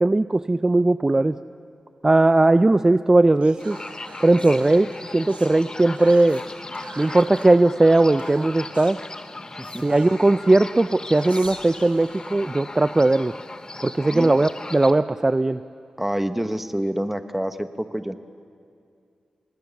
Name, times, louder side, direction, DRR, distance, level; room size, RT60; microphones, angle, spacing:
voice 1, 0.0-1.4 2.0-3.8 4.2-6.4 7.0-9.0 9.8-13.3 13.8-15.6, right 2 dB, 25° right, 13 dB, 0.5 m, -18 dB
Whispering, 3.4-5.5 5.9-7.5 8.2-9.0 9.6-10.5 11.1-13.0, right 4 dB, 85° right, 3.2 m, -45 dB
sound 1, 3.6-14.9, left 2 dB, 35° left, 1.1 m, -38 dB
voice 2, 9.5-9.8 14.0-14.4 16.0-18.2, right 1 dB, 10° right, 10 dB, 1.2 m, -27 dB
28.0 x 19.5 x 7.1 m, 2.5 s
cardioid pair, 65°, 2 cm